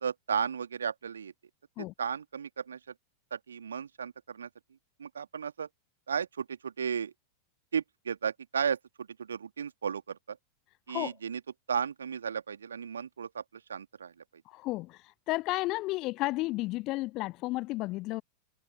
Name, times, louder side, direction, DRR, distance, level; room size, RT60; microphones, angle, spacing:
voice 1, 0.0-1.3 1.8-2.8 3.3-4.5 5.0-5.7 6.1-7.1 7.7-10.4 10.9-11.4 11.7-14.1, right 7 dB, 70° right, 2.2 m, -34 dB
voice 2, 14.5-15.0 15.3-18.2, left 20 dB, 40° left, 0.4 m, -32 dB
figure-of-eight pair, 90°, 0 cm